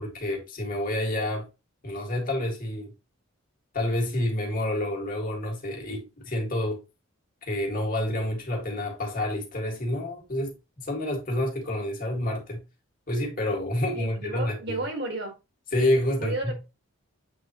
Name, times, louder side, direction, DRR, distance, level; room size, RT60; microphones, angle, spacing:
voice 1, 0.0-1.4 1.8-2.9 3.7-6.8 7.4-12.6 13.1-14.8 15.7-16.6, left 1 dB, 40° left, 2.1 m, -28 dB
voice 2, 13.9-15.3 16.2-16.6, right 2 dB, 50° right, 1.8 m, -32 dB
8.1 x 3.8 x 3.0 m
head